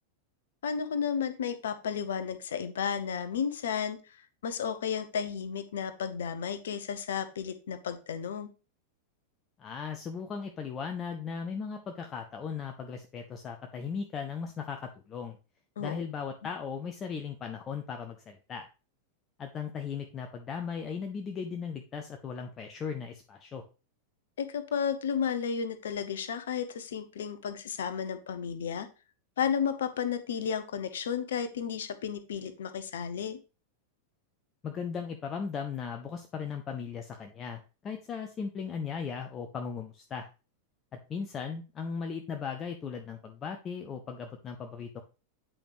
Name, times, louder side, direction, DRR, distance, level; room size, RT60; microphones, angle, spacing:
voice 1, 0.6-8.5 15.8-15.9 24.4-28.9 29.4-33.4, left 7 dB, 60° left, 11 dB, 0.9 m, -33 dB
voice 2, 9.6-15.4 15.8-18.7 19.4-23.6 34.6-40.3 41.1-45.0, left 6 dB, 25° left, 4 dB, 0.8 m, -37 dB
8.8 x 5.1 x 3.1 m, 0.32 s
figure-of-eight pair, 90°, 0 cm